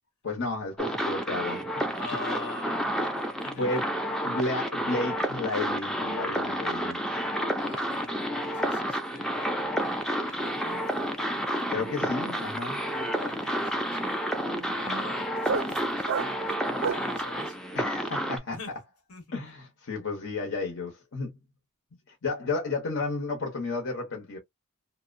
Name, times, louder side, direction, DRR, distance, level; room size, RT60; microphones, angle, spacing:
voice 1, 0.2-1.9 3.6-3.9 4.2-7.0 11.7-12.8 17.7-18.6 19.3-21.3 22.2-24.4, left 3 dB, 60° left, 0.8 m, -32 dB
sound 1, 0.8-18.4, equal, 5° left, 0.4 m, -30 dB
voice 2, 2.0-3.8 7.5-10.8 12.9-14.4 14.7-17.6 18.5-18.7 19.1-19.2, left 3 dB, 80° left, 1.2 m, -44 dB
sound 2, 10.4-10.7 11.0-17.2, right 5 dB, 60° right, 0.4 m, -36 dB
2.7 x 2.0 x 2.5 m
head